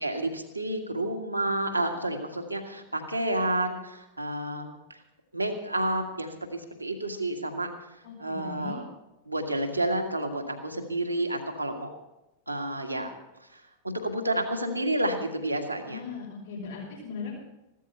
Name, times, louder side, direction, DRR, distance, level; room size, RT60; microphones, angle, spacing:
voice 1, 0.0-4.8 5.3-7.7 8.2-8.8 9.3-11.9 12.5-13.1 13.5-16.0, right 1 dB, 85° right, 3 dB, 1.8 m, -30 dB
voice 2, 8.0-8.8 15.9-17.4, left 5 dB, 65° left, -6 dB, 5.2 m, -38 dB
15.5 x 13.0 x 5.5 m, 0.94 s
figure-of-eight pair, 90°, 0 cm